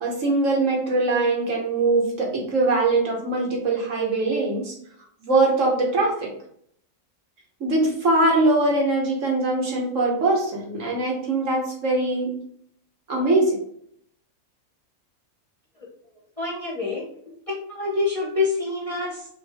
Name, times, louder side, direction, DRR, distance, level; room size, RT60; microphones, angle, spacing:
voice 1, 0.0-4.7 5.2-6.3 7.6-12.3 13.1-13.6, right 2 dB, 60° right, 0 dB, 1.5 m, -22 dB
voice 2, 16.4-17.0 17.5-19.3, left 3 dB, 30° left, -4 dB, 0.7 m, -26 dB
5.2 x 2.6 x 3.4 m, 0.66 s
omnidirectional pair, 1.5 m